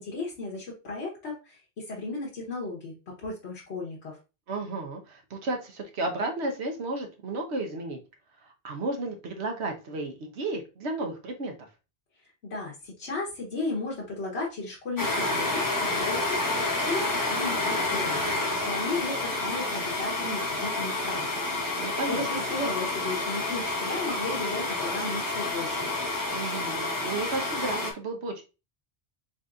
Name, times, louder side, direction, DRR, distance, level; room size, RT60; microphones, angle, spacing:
voice 1, 0.0-2.9 3.2-4.2 12.4-18.2 18.6-21.3 21.7-25.9, left 3 dB, 80° left, -4 dB, 1.4 m, -35 dB
voice 2, 4.5-8.0 8.4-11.5 21.8-22.4 26.3-28.4, right 2 dB, 80° right, 4 dB, 1.2 m, -33 dB
sound 1, 15.0-27.9, left 2 dB, 20° left, 0.9 m, -29 dB
4.0 x 3.9 x 2.5 m, 0.29 s
omnidirectional pair, 1.1 m